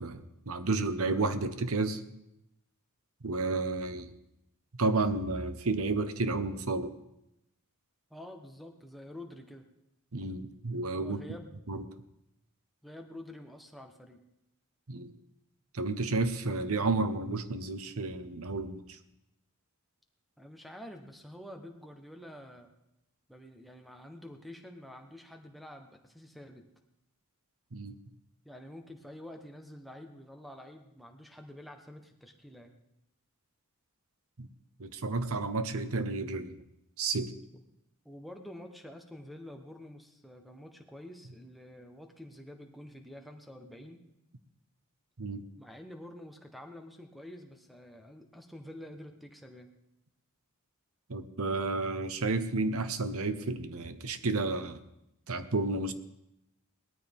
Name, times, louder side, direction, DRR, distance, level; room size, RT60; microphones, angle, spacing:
voice 1, 0.0-2.0 3.2-4.1 4.8-6.9 10.1-11.2 11.7-11.8 14.9-15.1 15.7-19.0 27.7-28.0 34.4-34.5 34.8-36.6 37.0-37.3 45.2-45.4 51.1-54.8 55.3-55.9, right 3 dB, 75° right, 11 dB, 1.0 m, -31 dB
voice 2, 8.1-9.7 10.9-11.6 12.8-14.2 20.4-22.7 23.3-26.6 28.4-32.7 38.0-44.0 45.6-49.7, left 1 dB, ahead, 5 dB, 1.2 m, -48 dB
18.5 x 13.5 x 3.6 m, 0.86 s
head